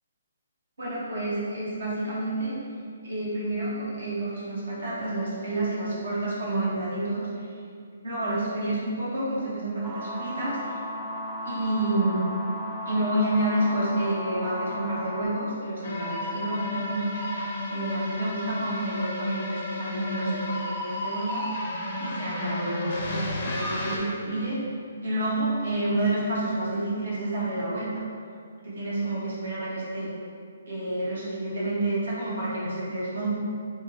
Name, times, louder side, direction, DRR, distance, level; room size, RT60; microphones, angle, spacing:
voice 1, 0.8-2.5 3.0-7.3 8.0-10.8 11.4-12.2 12.9-17.4 17.7-21.6 22.0-24.6 25.0-27.9 28.6-30.1 30.7-33.3, right 1 dB, 80° right, -8 dB, 1.0 m, -29 dB
sound 1, 9.8-15.3, left 1 dB, 10° right, 0.4 m, -35 dB
sound 2, 15.8-24.0, left 1 dB, 50° left, 0.6 m, -32 dB
3.6 x 2.3 x 2.6 m, 2.3 s
hypercardioid pair, 140°, 0 cm